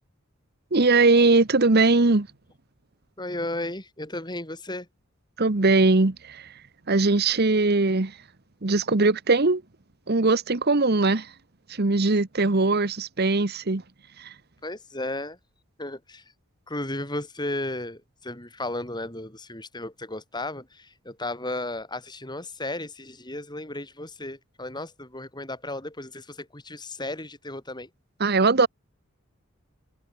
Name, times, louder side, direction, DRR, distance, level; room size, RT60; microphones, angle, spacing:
voice 1, 0.7-2.3 5.4-6.4 6.9-8.1 8.6-9.6 10.1-11.3 11.8-13.8 14.2-14.3 28.2-28.7, right 3 dB, 50° right, 1.1 m, -20 dB
voice 2, 3.2-4.9 14.6-15.4 15.8-16.2 16.7-27.9, left 1 dB, 20° left, 6.6 m, -34 dB
head